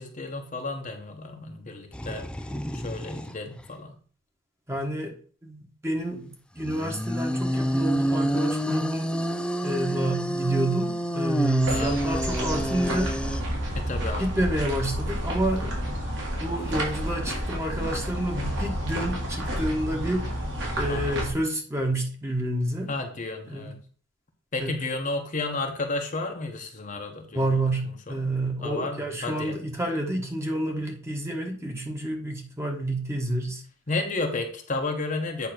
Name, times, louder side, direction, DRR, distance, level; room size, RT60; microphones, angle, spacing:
voice 1, 0.0-2.3 2.7-4.0 11.7-12.0 13.7-14.2 20.9-21.2 22.9-23.8 24.5-27.5 28.1-29.5 33.9-35.5, left 3 dB, 40° left, 3 dB, 1.1 m, -32 dB
sound 1, 1.9-3.3 3.6-3.7 6.6-13.4, equal, 5° left, 0.4 m, -28 dB
voice 2, 4.7-5.1 5.4-9.1 9.6-13.2 14.2-15.9 16.4-20.3 20.7-22.9 23.5-23.7 24.6-24.7 27.3-33.6, right 1 dB, 15° right, 1 dB, 1.4 m, -29 dB
sound 2, 11.6-21.3, equal, 65° right, 2.8 m, -30 dB
8.5 x 3.0 x 6.1 m, 0.42 s
head